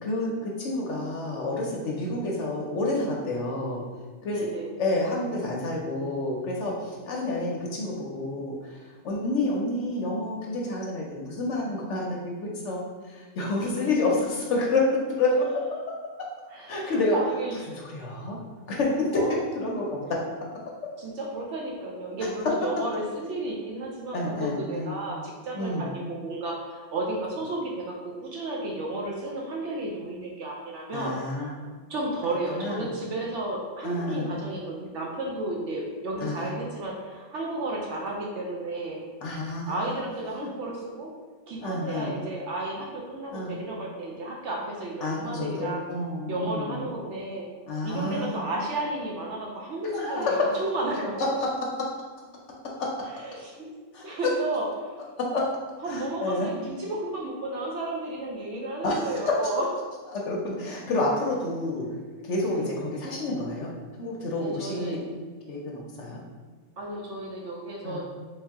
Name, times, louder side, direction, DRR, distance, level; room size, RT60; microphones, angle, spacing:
voice 1, 0.0-3.8 4.2-4.5 4.8-16.3 16.7-17.2 17.7-18.4 18.7-20.1 20.8-20.9 22.2-22.3 24.1-25.0 25.5-25.9 30.9-31.8 32.5-32.9 33.8-34.3 36.2-36.5 39.2-39.7 40.4-40.5 41.6-42.1 43.3-43.6 45.0-46.8 47.7-48.4 49.9-50.6 51.2-51.5 52.6-53.1 53.9-54.3 55.2-55.4 55.8-56.5 58.8-59.4 60.1-61.9 62.2-65.0 65.5-66.2 67.8-68.0, left 2 dB, 65° left, -2 dB, 0.8 m, -29 dB
voice 2, 4.3-4.7 16.5-17.8 19.1-19.4 21.0-31.1 31.9-39.0 39.7-41.1 41.5-45.8 46.3-47.4 47.8-51.2 53.2-53.7 54.0-55.1 55.8-59.6 62.5-62.8 64.4-65.0 66.8-68.0, right 2 dB, 65° right, -2 dB, 0.8 m, -33 dB
3.5 x 2.7 x 3.5 m, 1.5 s
omnidirectional pair, 1.5 m